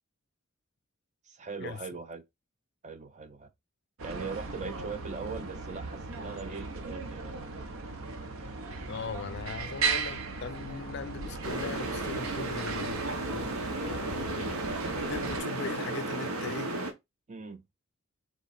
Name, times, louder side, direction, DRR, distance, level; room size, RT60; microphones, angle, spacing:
voice 1, 1.3-2.2 2.8-3.5 4.0-7.3 17.3-17.6, right 5 dB, 35° right, 0.5 m, -40 dB
sound 1, 4.0-15.4, right 4 dB, 65° right, 0.7 m, -37 dB
voice 2, 8.9-14.6 15.1-16.7, left 5 dB, 55° left, 0.4 m, -40 dB
sound 2, 11.4-16.9, right 2 dB, 85° right, 1.0 m, -34 dB
3.6 x 3.0 x 4.0 m
head